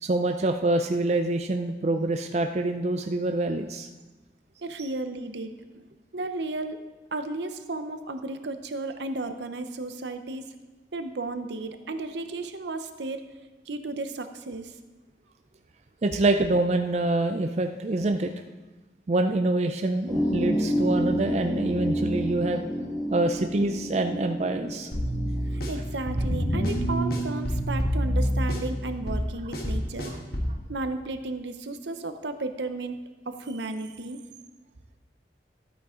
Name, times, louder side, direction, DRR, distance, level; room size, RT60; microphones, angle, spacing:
voice 1, 0.0-3.9 4.8-4.9 16.0-18.3 19.1-22.7 23.1-24.9 26.5-26.7 30.1-30.2, right 2 dB, 35° right, 5 dB, 0.4 m, -26 dB
voice 2, 4.6-6.8 7.1-10.4 10.9-13.2 13.7-14.7 25.5-30.1 30.7-33.0 33.3-34.2, right 2 dB, 75° right, 8 dB, 0.8 m, -34 dB
sound 1, 20.1-27.1, equal, ahead, 1.5 m, -30 dB
sound 2, 24.9-30.6, equal, 55° left, 1.5 m, -27 dB
13.0 x 8.6 x 3.8 m, 1.2 s
head